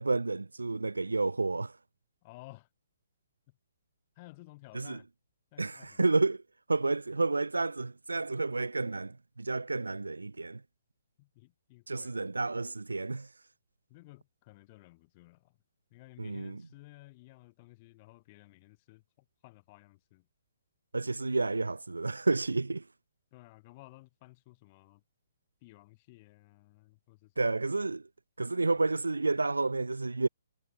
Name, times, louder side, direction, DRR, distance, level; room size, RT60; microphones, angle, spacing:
voice 1, 0.0-1.7 4.7-5.0 5.6-6.4 6.7-10.6 11.9-13.3 16.2-16.6 20.9-22.8 27.4-28.0 28.4-30.3, right 3 dB, 75° right, 1.4 m, -30 dB
voice 2, 2.2-2.7 3.5-3.6 4.2-5.1 5.5-6.0 11.2-12.3 13.9-15.6 15.9-19.0 19.4-20.3 23.3-25.0 25.6-27.5, left 22 dB, 30° left, 6.0 m, -55 dB
figure-of-eight pair, 125°, 0 cm